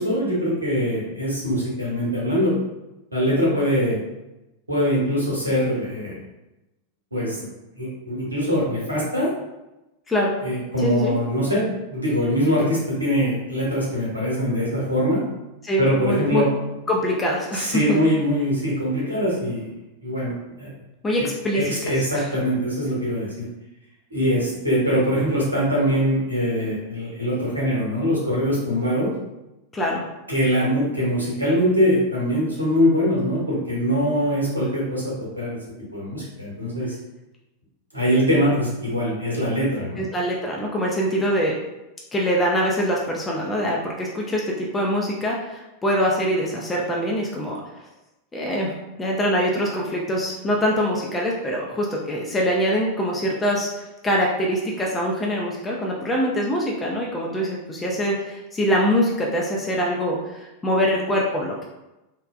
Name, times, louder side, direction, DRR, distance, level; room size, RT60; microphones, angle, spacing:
voice 1, 0.0-2.6 3.1-4.0 4.7-6.2 7.1-7.5 7.7-9.3 10.4-15.2 15.8-16.5 17.5-19.7 20.0-20.7 21.2-21.3 21.5-23.4 24.1-29.1 30.3-35.6 35.9-37.0 37.9-40.0, equal, 80° right, -5 dB, 1.0 m, -23 dB
voice 2, 10.1-10.4 10.8-11.2 15.6-16.5 16.9-18.0 21.0-22.3 29.7-30.0 40.0-41.5 42.1-47.6 48.3-48.7 49.0-53.7 54.0-61.6, equal, 15° left, -2 dB, 0.4 m, -24 dB
3.2 x 2.1 x 2.4 m, 0.99 s
figure-of-eight pair, 90°, 0 cm